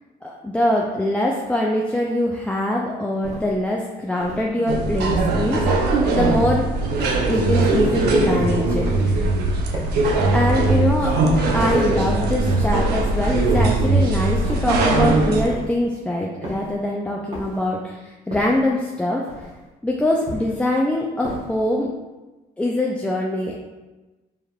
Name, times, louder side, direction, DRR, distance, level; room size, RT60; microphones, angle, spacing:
voice 1, 0.2-6.7 7.3-9.2 10.3-11.2 11.4-19.3 19.8-21.9 22.6-23.7, left 1 dB, 5° left, -2 dB, 0.3 m, -23 dB
sound 1, 3.2-3.6 4.2-4.5 5.1-5.5 6.0-6.4 7.0-7.4 7.9-8.3 8.8-9.2 9.7-10.1 10.7-11.1 11.6-12.0 12.5-12.9 13.5-13.9 14.5-14.9 15.5-15.9 16.4-16.8 17.3-17.7 18.3-18.7 19.3-19.7 20.3-20.7 21.2-21.7, equal, 40° right, 1.3 m, -35 dB
sound 2, 4.7-15.5, right 2 dB, 75° right, 0.6 m, -20 dB
4.9 x 3.2 x 2.3 m, 1.2 s
cardioid pair, 110°, 17 cm